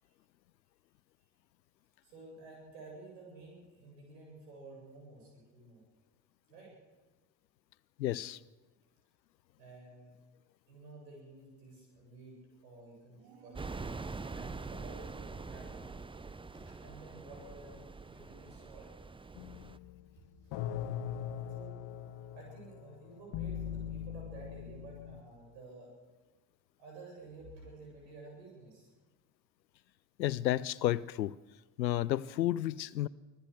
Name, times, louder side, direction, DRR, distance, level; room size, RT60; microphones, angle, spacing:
voice 1, 2.0-5.8 6.5-6.7 9.6-10.1 10.7-12.4 12.6-15.9 16.5-18.9 20.4-20.6 21.5-21.7 22.3-25.9 26.8-28.9, right 3 dB, 80° right, 7.8 m, -52 dB
voice 2, 8.0-8.4 30.2-31.3 31.8-33.1, left 14 dB, 90° left, 0.6 m, -31 dB
sound 1, 13.1-16.1, right 7 dB, 60° right, 2.7 m, -58 dB
sound 2, 13.5-19.8, right 4 dB, 10° right, 0.6 m, -44 dB
sound 3, 19.3-25.2, left 9 dB, 55° left, 1.3 m, -41 dB
25.0 x 15.5 x 6.8 m
figure-of-eight pair, 45°, 50 cm